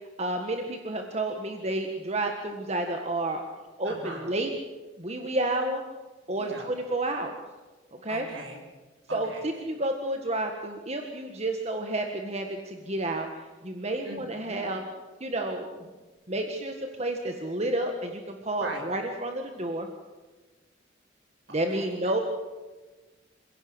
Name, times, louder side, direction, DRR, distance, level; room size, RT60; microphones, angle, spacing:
voice 1, 0.2-3.5 3.8-4.5 5.0-5.8 6.3-7.4 7.9-8.2 9.1-14.8 15.2-15.7 16.3-19.9 21.5-22.2, right 1 dB, 35° right, 4 dB, 1.6 m, -30 dB
voice 2, 3.8-4.3 6.4-6.7 8.1-8.6 9.1-9.7 14.0-14.7 18.6-18.8 21.5-21.9, right 2 dB, 70° right, 0 dB, 6.2 m, -40 dB
27.0 x 16.5 x 7.9 m, 1.3 s
head